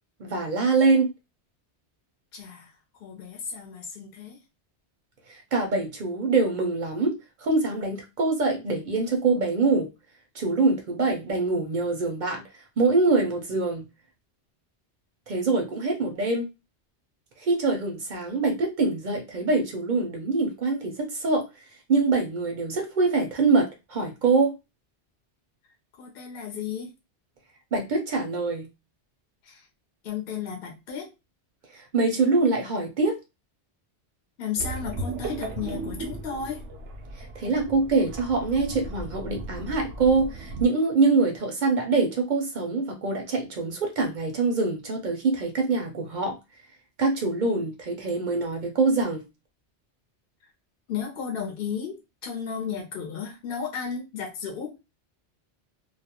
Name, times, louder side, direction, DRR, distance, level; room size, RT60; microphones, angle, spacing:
voice 1, 0.2-1.1 5.3-9.9 10.3-12.4 12.8-13.9 15.3-16.4 17.4-21.4 21.9-24.5 27.7-28.7 31.7-33.1 37.2-46.4 47.0-49.2, right 3 dB, 55° right, 3 dB, 0.6 m, -24 dB
voice 2, 2.3-2.7 3.0-4.4 26.0-26.9 29.4-29.6 30.0-31.1 34.4-36.6 50.9-52.0 52.2-54.8, left 6 dB, 60° left, 0 dB, 0.8 m, -33 dB
sound 1, 34.6-40.7, right 2 dB, 90° right, 0.9 m, -36 dB
2.3 x 2.1 x 2.8 m, 0.25 s
omnidirectional pair, 1.2 m